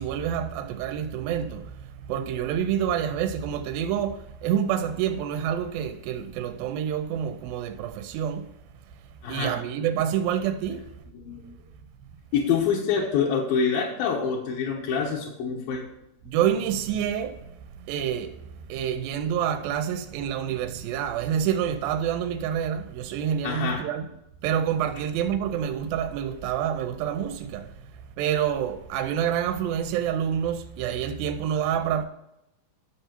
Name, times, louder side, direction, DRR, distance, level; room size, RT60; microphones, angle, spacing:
voice 1, 0.0-8.5 8.9-9.0 9.3-10.9 16.3-24.1 24.4-32.0, right 9 dB, 90° right, 2.4 m, -28 dB
voice 2, 9.2-9.6 11.2-11.4 12.3-15.8 23.4-23.8, left 6 dB, 80° left, 2.7 m, -26 dB
10.5 x 6.8 x 4.4 m
omnidirectional pair, 4.2 m